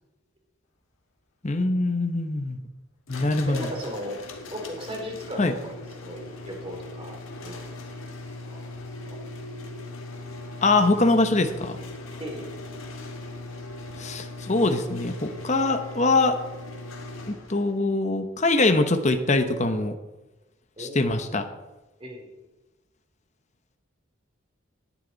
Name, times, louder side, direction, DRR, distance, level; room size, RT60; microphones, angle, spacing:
voice 1, 1.4-2.6 3.1-3.7 5.4-5.5 10.6-11.8 14.0-16.3 17.3-19.9 20.8-21.5, left 2 dB, 35° left, 7 dB, 1.0 m, -23 dB
sound 1, 3.1-17.8, left 2 dB, 85° left, 1.8 m, -39 dB
voice 2, 3.5-4.2 4.5-7.2 7.4-7.5 8.4-8.7 9.0-9.2 12.2-12.5 20.8-21.0 22.0-22.5, equal, 25° right, 1 dB, 2.9 m, -37 dB
17.5 x 10.5 x 4.0 m, 1.1 s
head